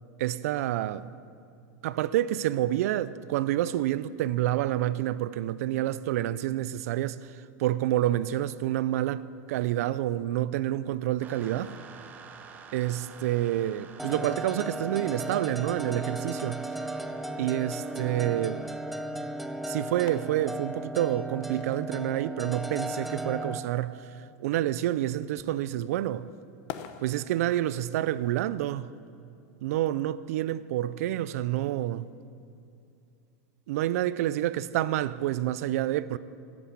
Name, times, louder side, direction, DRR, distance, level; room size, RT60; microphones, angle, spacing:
voice 1, 0.2-1.1 1.8-9.2 9.5-11.8 12.7-16.7 17.4-18.6 19.6-24.0 24.4-26.3 27.0-28.9 29.6-32.1 33.7-36.2, right 13 dB, 65° right, 0.5 m, -28 dB
sound 1, 11.2-18.8, right 6 dB, 20° right, 0.8 m, -50 dB
sound 2, 14.0-23.6, right 1 dB, ahead, 0.4 m, -35 dB
sound 3, 14.7-28.4, left 10 dB, 45° left, 0.7 m, -51 dB
13.5 x 8.1 x 8.4 m
supercardioid pair, 160°, 9 cm